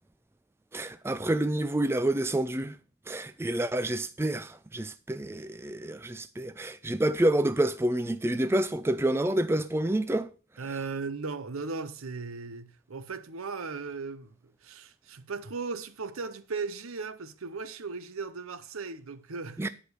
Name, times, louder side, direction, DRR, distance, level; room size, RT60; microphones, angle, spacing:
voice 1, 0.7-2.8 3.1-10.3 19.6-19.7, right 1 dB, 10° right, 0.3 m, -28 dB
voice 2, 10.6-19.7, right 4 dB, 85° right, 0.8 m, -37 dB
10.0 x 5.0 x 6.3 m
head